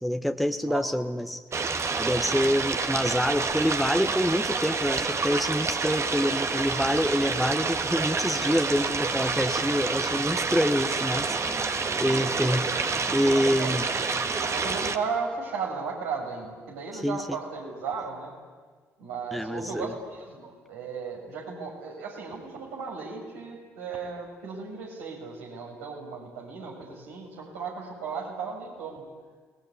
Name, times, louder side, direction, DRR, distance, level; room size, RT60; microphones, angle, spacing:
voice 1, 0.0-1.7 2.0-12.9 13.1-13.8 16.9-17.4 19.3-19.9, equal, ahead, 7 dB, 1.5 m, -27 dB
sound 1, 1.5-15.0, right 4 dB, 35° right, 2.0 m, -28 dB
voice 2, 11.6-12.2 13.6-13.8 14.4-18.3 19.0-29.0, right 5 dB, 75° right, -1 dB, 7.1 m, -35 dB
29.0 x 21.0 x 9.7 m, 1.5 s
figure-of-eight pair, 45°, 8 cm